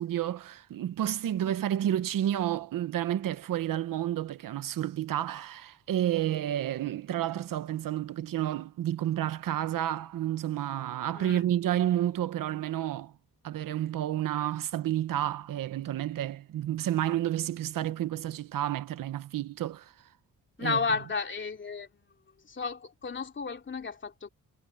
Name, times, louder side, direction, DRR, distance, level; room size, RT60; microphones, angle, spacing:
voice 1, 0.0-13.1 13.4-19.9 20.6-20.8, right 12 dB, 90° right, 1.1 m, -30 dB
voice 2, 20.6-21.9 22.4-24.3, left 4 dB, 35° left, 3.0 m, -32 dB
cardioid pair, 125°, 32 cm